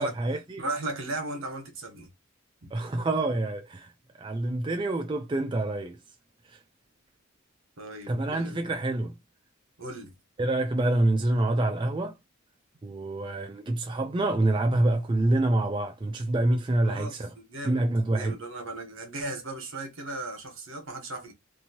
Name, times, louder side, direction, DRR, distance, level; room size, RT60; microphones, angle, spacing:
voice 1, 0.0-0.6 2.7-3.9 4.2-6.0 8.1-9.1 10.4-12.1 12.8-17.3 17.6-18.4, right 2 dB, 25° right, 0.3 m, -26 dB
voice 2, 0.6-2.1 7.8-8.8 9.8-10.1 16.8-17.8 18.1-21.3, right 2 dB, 70° right, 1.2 m, -36 dB
3.0 x 2.6 x 2.8 m
head